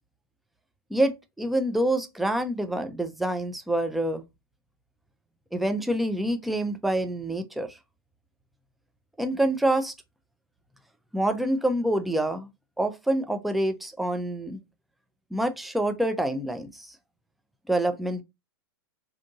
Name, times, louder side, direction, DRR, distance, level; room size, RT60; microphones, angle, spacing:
voice 1, 0.9-4.2 5.5-7.8 9.2-9.9 11.1-12.5 12.8-14.6 15.3-16.9 17.7-18.2, right 1 dB, ahead, 0.3 m, -26 dB
2.7 x 2.5 x 2.6 m
figure-of-eight pair, 100°, 13 cm